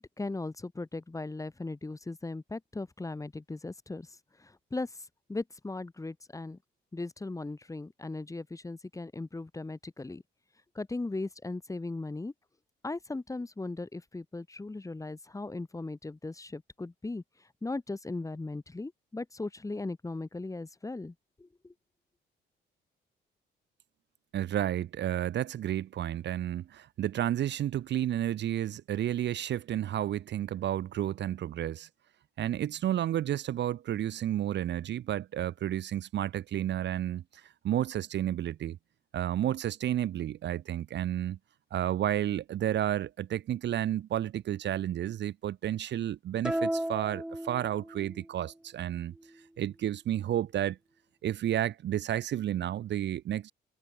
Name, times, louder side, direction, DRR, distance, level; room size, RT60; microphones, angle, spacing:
voice 1, 0.0-5.0 5.3-6.6 6.9-10.2 10.7-12.3 12.8-21.7, left 2 dB, 15° left, 1.4 m, -38 dB
voice 2, 24.3-31.9 32.4-37.2 37.6-38.8 39.1-41.4 41.7-49.1 49.6-50.8 51.2-53.5, right 11 dB, 60° right, 0.8 m, -31 dB
sound 1, 46.4-48.2, right 1 dB, 5° right, 0.6 m, -34 dB
cardioid pair, 90°, 20 cm